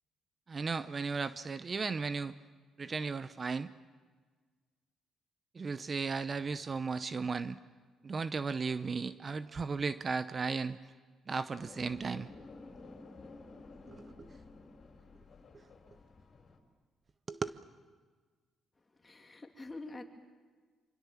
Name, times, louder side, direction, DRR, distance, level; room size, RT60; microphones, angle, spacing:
voice 1, 0.5-2.3 2.8-3.7 5.5-7.6 8.0-10.8 11.3-12.3 13.9-14.3 17.3-17.6, right 4 dB, 35° right, 14 dB, 0.7 m, -35 dB
sound 1, 11.6-16.6, left 3 dB, 50° left, 4.3 m, -52 dB
voice 2, 19.0-20.0, left 2 dB, 20° left, 3 dB, 2.8 m, -46 dB
25.5 x 25.5 x 7.3 m, 1.5 s
cardioid pair, 90°, 0 cm